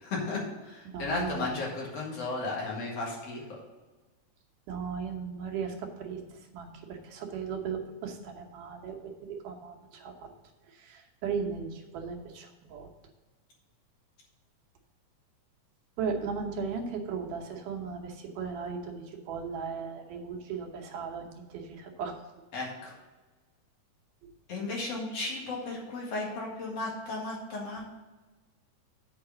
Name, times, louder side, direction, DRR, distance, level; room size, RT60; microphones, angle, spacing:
voice 1, 0.0-3.4 22.5-22.9 24.5-27.8, left 3 dB, 55° left, -3 dB, 2.8 m, -34 dB
voice 2, 0.9-1.6 4.7-10.3 10.7-12.9 16.0-22.2, right 5 dB, 90° right, 2 dB, 2.7 m, -37 dB
8.3 x 4.9 x 6.6 m, 1.2 s
omnidirectional pair, 3.6 m